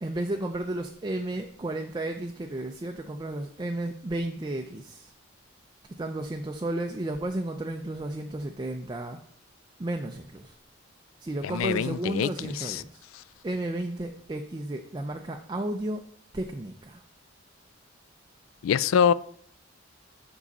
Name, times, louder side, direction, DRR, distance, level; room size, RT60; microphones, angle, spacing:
voice 1, 0.0-5.1 5.9-9.2 9.8-10.6 11.2-13.0 13.4-16.0 16.3-17.0, right 1 dB, 20° right, 4 dB, 0.4 m, -33 dB
voice 2, 11.4-12.8 18.6-19.1, left 8 dB, 85° left, 19 dB, 0.3 m, -25 dB
7.3 x 5.5 x 4.1 m, 0.62 s
head